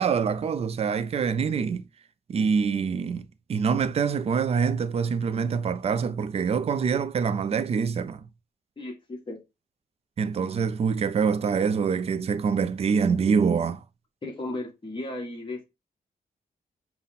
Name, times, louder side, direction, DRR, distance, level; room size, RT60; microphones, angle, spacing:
voice 1, 0.0-1.8 2.3-3.2 3.5-8.2 10.2-13.8, right 6 dB, 40° right, 0.4 m, -25 dB
voice 2, 8.8-9.4 14.2-15.6, left 2 dB, 30° left, 1.3 m, -35 dB
5.4 x 2.1 x 4.1 m
wide cardioid pair, 150°, 16 cm